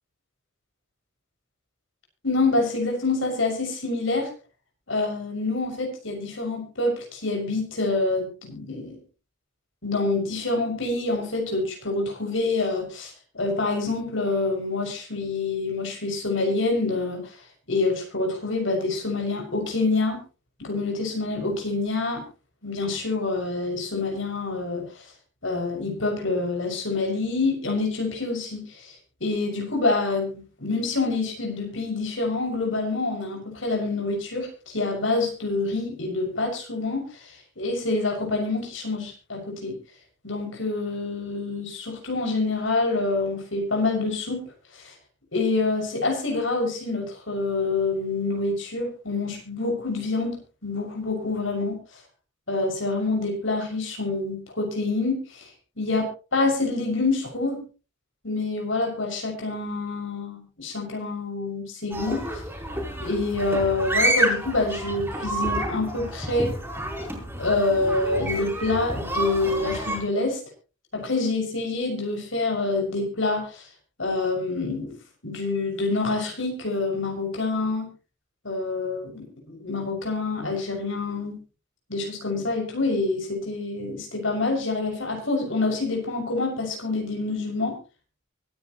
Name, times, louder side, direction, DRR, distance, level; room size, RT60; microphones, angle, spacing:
voice 1, 2.2-4.3 4.9-9.0 9.8-17.3 17.7-20.2 20.6-22.2 22.6-24.8 25.4-28.9 29.2-39.8 40.2-44.4 44.7-44.9 45.3-51.8 52.5-55.4 55.8-57.6 58.2-62.3 63.0-66.5 67.4-70.4 70.9-73.6 74.0-74.9 75.2-77.9 78.4-81.4 81.9-87.8, left 3 dB, 70° left, 2 dB, 6.5 m, -26 dB
sound 1, 61.9-70.0, right 1 dB, 10° right, 4.6 m, -29 dB
24.0 x 10.0 x 3.1 m, 0.33 s
head